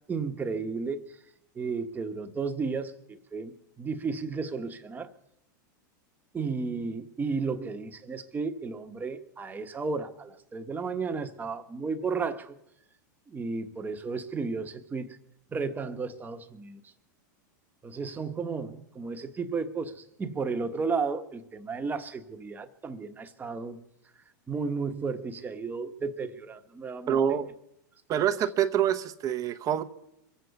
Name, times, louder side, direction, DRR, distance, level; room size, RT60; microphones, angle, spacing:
voice 1, 0.1-1.2 1.5-5.1 6.3-12.6 13.3-15.2 15.5-16.8 17.8-23.8 24.5-27.4 28.1-28.2, right 4 dB, 15° right, 6 dB, 1.3 m, -33 dB
voice 2, 27.1-27.5 28.1-29.8, right 9 dB, 35° right, 9 dB, 0.9 m, -26 dB
23.5 x 8.0 x 7.0 m, 0.82 s
hypercardioid pair, 120°, 10 cm